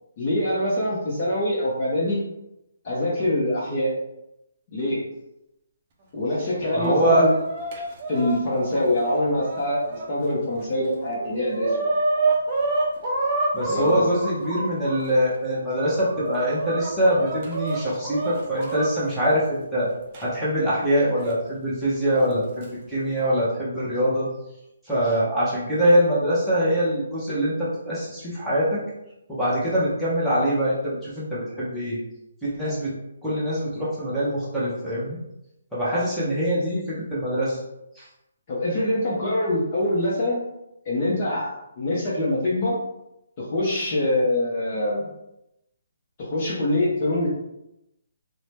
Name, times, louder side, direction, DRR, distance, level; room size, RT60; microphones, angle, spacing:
voice 1, 0.2-2.2 2.9-3.9 4.7-5.0 6.1-7.3 8.1-9.8 10.1-11.7 13.7-14.0 38.5-40.4 40.9-41.5 41.8-42.7 43.5-45.1 46.3-47.3, left 1 dB, 35° left, -7 dB, 0.7 m, -24 dB
voice 2, 6.4-7.3 13.5-19.9 20.2-24.3 24.8-28.8 29.3-32.0 32.4-32.9 33.2-35.2 35.7-37.6 37.9-38.1, equal, ahead, -11 dB, 0.8 m, -23 dB
Chicken rooster, 6.6-10.0 10.6-10.7 11.0-15.0 15.6-18.9 20.1-20.2 21.2-21.3 22.3-22.6, right 2 dB, 30° right, 0.5 m, -28 dB
2.7 x 2.1 x 3.2 m, 0.88 s
hypercardioid pair, 160°, 0 cm